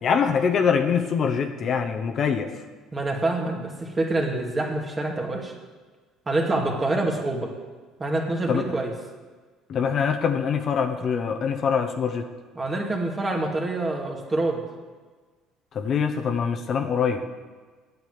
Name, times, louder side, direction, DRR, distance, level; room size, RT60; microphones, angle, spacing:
voice 1, 0.0-2.5 8.5-8.6 9.7-12.3 15.7-17.2, left 6 dB, 50° left, 6 dB, 1.0 m, -24 dB
voice 2, 2.9-5.5 6.3-7.5 8.0-8.9 12.6-14.6, right 2 dB, 25° right, 1 dB, 2.3 m, -26 dB
9.0 x 7.7 x 7.8 m, 1.4 s
supercardioid pair, 80°, 0 cm